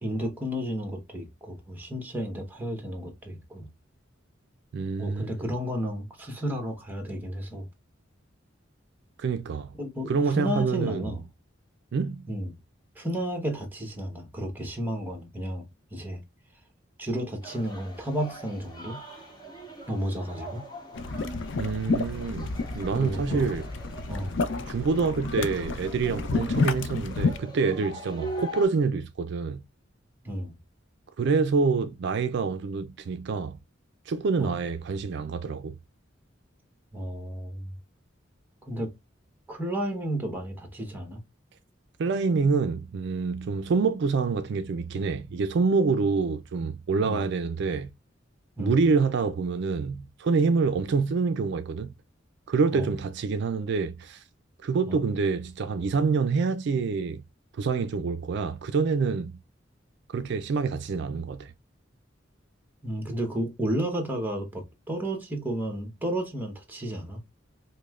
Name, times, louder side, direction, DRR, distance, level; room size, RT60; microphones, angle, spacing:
voice 1, 0.0-3.7 5.0-7.7 9.8-11.2 12.3-12.5 13.0-15.6 15.9-16.2 17.0-19.0 19.9-20.6 22.9-23.6 24.1-24.4 30.2-30.6 34.4-34.6 36.9-37.7 38.6-38.9 39.5-41.2 47.0-47.2 48.6-48.8 52.7-52.9 54.9-55.0 62.8-67.2, equal, 10° right, 1.1 m, -32 dB
voice 2, 4.7-5.3 9.2-9.7 10.1-11.1 11.9-12.3 21.5-23.7 24.7-29.6 31.2-33.6 34.1-35.8 42.0-47.9 48.6-51.9 52.5-54.2 54.6-57.2 57.6-59.3 60.1-61.5, right 4 dB, 60° right, 0.4 m, -26 dB
sound 1, 17.4-28.7, right 1 dB, 20° left, 1.2 m, -43 dB
sound 2, 20.9-27.4, left 3 dB, 65° left, 0.5 m, -30 dB
5.1 x 2.1 x 2.3 m
head